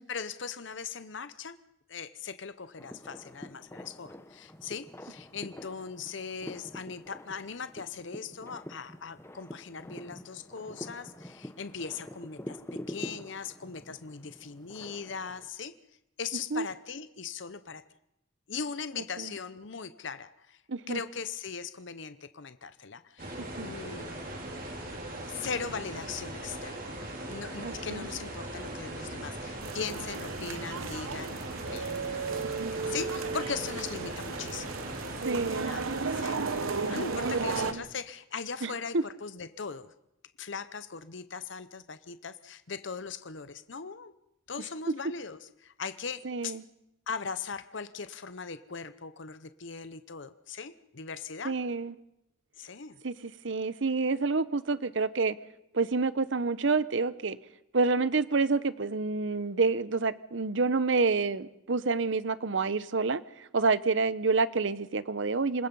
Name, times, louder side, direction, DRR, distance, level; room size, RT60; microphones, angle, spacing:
voice 1, 0.0-1.6 1.9-15.7 16.2-17.8 18.5-20.6 20.9-24.2 25.2-26.9 27.3-31.9 32.9-34.8 35.5-36.4 36.8-39.9 40.4-44.1 44.5-46.6 47.1-51.6 52.6-53.0, left 5 dB, 65° left, 12 dB, 0.8 m, -39 dB
sound 1, 2.8-15.5, equal, 10° left, 1.1 m, -46 dB
voice 2, 20.7-21.0 23.6-23.7 27.6-28.1 32.4-32.7 35.2-35.8 37.2-37.3 37.6-37.8 38.6-38.7 38.9-39.0 46.2-46.6 51.4-51.9 53.0-55.4 55.7-57.4 57.7-65.7, right 4 dB, 65° right, 16 dB, 0.8 m, -28 dB
sound 2, 23.2-37.7, right 1 dB, 45° right, 4.5 m, -40 dB
sound 3, 29.6-37.7, right 4 dB, 85° right, 1.0 m, -34 dB
27.0 x 20.5 x 5.5 m, 0.83 s
head